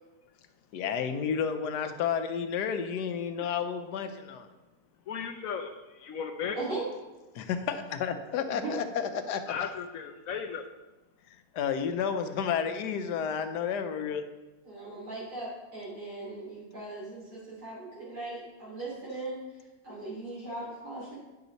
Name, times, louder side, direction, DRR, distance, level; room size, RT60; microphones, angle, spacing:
voice 1, 0.7-4.5 7.4-9.7 11.5-14.2, left 7 dB, 85° left, 8 dB, 1.3 m, -31 dB
voice 2, 5.1-6.6 9.5-10.6, left 7 dB, 70° left, 5 dB, 0.9 m, -36 dB
voice 3, 6.5-6.9 8.5-8.8 14.6-19.4 19.8-21.2, right 2 dB, 80° right, -9 dB, 3.7 m, -38 dB
9.6 x 5.7 x 4.0 m, 1.1 s
omnidirectional pair, 1.7 m